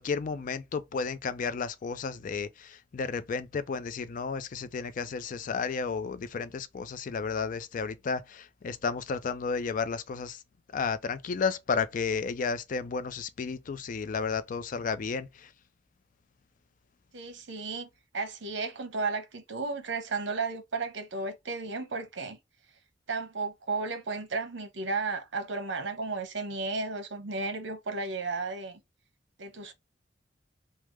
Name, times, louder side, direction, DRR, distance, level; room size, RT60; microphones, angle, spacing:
voice 1, 0.0-10.4 10.7-15.5, left 5 dB, 45° left, 0.4 m, -32 dB
voice 2, 17.1-22.4 23.1-28.8 29.4-29.7, right 3 dB, 75° right, 0.8 m, -34 dB
3.4 x 2.0 x 3.0 m
head